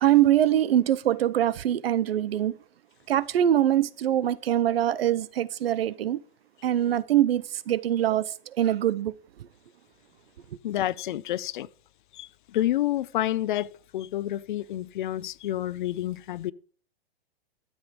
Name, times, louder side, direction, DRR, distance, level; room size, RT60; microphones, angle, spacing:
voice 1, 0.0-2.6 3.1-6.2 6.6-8.3 8.6-9.1, right 11 dB, 70° right, 0.8 m, -23 dB
voice 2, 10.6-11.7 12.1-16.5, left 13 dB, 55° left, 0.6 m, -29 dB
13.0 x 8.0 x 5.1 m
hypercardioid pair, 155°, 30 cm